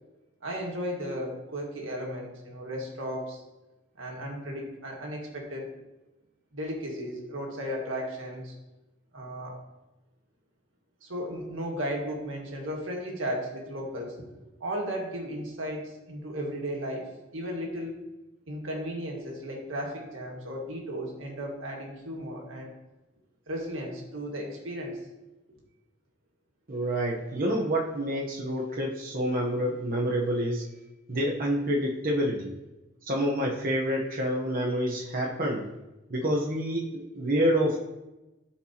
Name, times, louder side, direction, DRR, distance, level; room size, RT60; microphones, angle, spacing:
voice 1, 0.4-3.4 4.0-5.7 6.5-8.6 9.1-9.5 11.0-14.2 14.6-18.1 18.5-22.7 23.5-25.0, equal, 80° right, -1 dB, 1.8 m, -35 dB
voice 2, 26.7-30.7 31.1-32.5 33.0-35.7 36.1-37.8, equal, 45° right, -3 dB, 1.0 m, -28 dB
13.0 x 4.5 x 2.9 m, 1.0 s
head